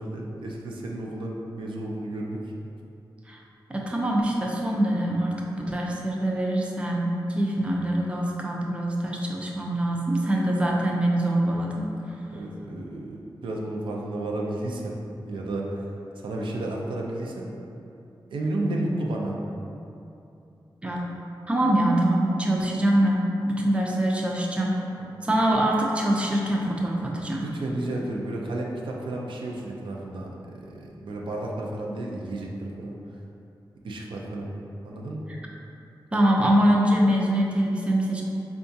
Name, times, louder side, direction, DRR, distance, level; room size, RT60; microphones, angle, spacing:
voice 1, 0.0-2.4 12.3-15.0 15.2-15.8 16.2-17.5 18.3-19.4 25.0-25.1 27.4-32.9 33.8-34.5 34.8-35.2, right 1 dB, 85° right, -2 dB, 0.4 m, -32 dB
voice 2, 3.7-11.9 20.8-21.1 21.5-24.8 25.2-27.4 36.1-38.2, right 1 dB, 15° right, -2 dB, 0.3 m, -24 dB
4.6 x 2.3 x 2.7 m, 2.8 s
wide cardioid pair, 145°, 8 cm